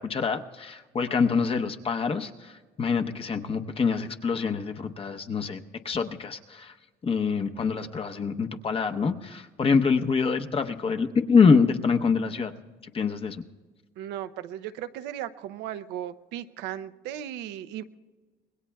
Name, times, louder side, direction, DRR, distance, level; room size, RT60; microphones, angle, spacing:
voice 1, 0.0-2.5 2.8-6.7 7.0-12.5 12.9-13.4, left 5 dB, 35° left, 6 dB, 0.9 m, -25 dB
voice 2, 14.0-17.8, right 11 dB, 90° right, 11 dB, 0.6 m, -36 dB
26.0 x 20.5 x 2.3 m, 1.4 s
cardioid pair, 110°, 17 cm